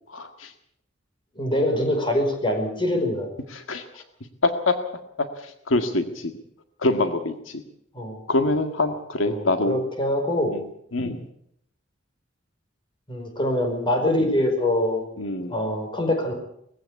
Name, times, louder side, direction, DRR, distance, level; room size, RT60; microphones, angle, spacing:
voice 1, 0.1-0.5 3.5-3.8 4.4-4.8 5.4-6.3 6.8-7.6 8.3-9.8 10.5-10.6 10.9-11.2 14.2-14.3 15.2-15.6, left 2 dB, 85° left, 7 dB, 1.8 m, -25 dB
voice 2, 1.3-3.3 7.9-8.2 9.3-10.5 13.1-15.0 15.5-16.3, left 1 dB, 25° left, 4 dB, 5.2 m, -24 dB
20.5 x 15.5 x 8.4 m, 0.72 s
head